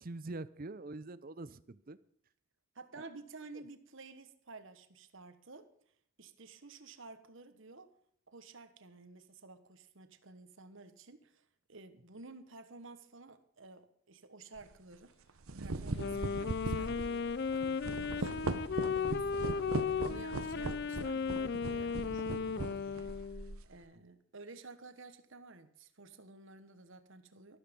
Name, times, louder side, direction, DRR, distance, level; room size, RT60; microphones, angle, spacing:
voice 1, 0.0-2.0 2.9-3.0 19.0-19.6, right 2 dB, 40° right, 0.6 m, -45 dB
voice 2, 2.7-5.7 6.2-7.9 8.3-15.1 15.6-17.3 17.5-27.6, right 3 dB, 60° right, 1.3 m, -53 dB
sound 1, 14.6-14.8 15.3-23.7, right 2 dB, 75° right, 1.0 m, -39 dB
Wind instrument woodwind instrument, 15.9-23.6, left 5 dB, 50° left, 0.4 m, -35 dB
13.0 x 13.0 x 5.3 m
head